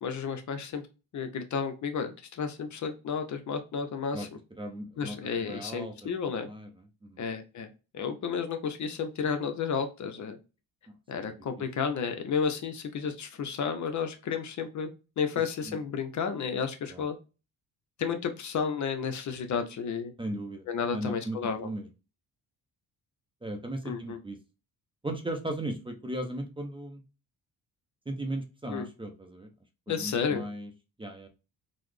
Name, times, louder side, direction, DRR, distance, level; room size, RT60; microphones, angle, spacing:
voice 1, 0.0-0.8 1.1-4.3 5.0-6.5 7.2-7.7 7.9-10.4 11.1-14.9 15.2-17.2 18.0-20.1 20.7-21.7 23.8-24.2 28.7-28.9 29.9-30.4, left 6 dB, 50° left, 7 dB, 0.6 m, -32 dB
voice 2, 4.6-5.2 5.4-6.1 6.5-6.7 7.0-7.2 15.7-15.8 16.9-17.0 20.2-20.6 20.9-21.4 21.6-21.9 23.4-24.4 25.0-27.0 28.1-29.5 29.9-30.7 31.0-31.3, right 1 dB, 15° right, 4 dB, 0.5 m, -36 dB
3.8 x 2.0 x 3.1 m, 0.31 s
cardioid pair, 110°, 38 cm